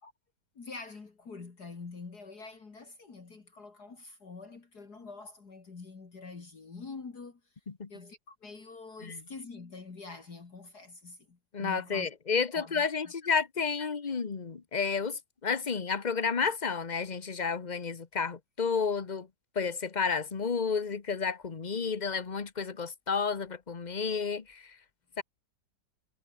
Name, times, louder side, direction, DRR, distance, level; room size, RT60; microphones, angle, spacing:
voice 1, 0.5-7.4 7.9-12.1 12.5-13.1 13.8-13.9, left 4 dB, 55° left, 3.2 m, -46 dB
voice 2, 11.5-19.3 19.5-24.8 25.2-25.3, left 5 dB, 30° left, 1.1 m, -31 dB
omnidirectional pair, 2.1 m